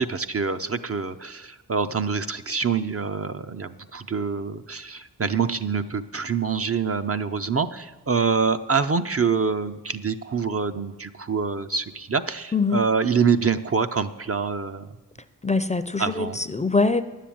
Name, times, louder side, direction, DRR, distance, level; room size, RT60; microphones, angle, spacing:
voice 1, 0.0-14.9 16.0-16.4, right 5 dB, 35° right, 8 dB, 0.6 m, -25 dB
voice 2, 12.5-12.8 15.4-17.0, left 3 dB, 15° left, 12 dB, 0.6 m, -23 dB
9.9 x 7.6 x 8.6 m, 1.2 s
cardioid pair, 50°, 42 cm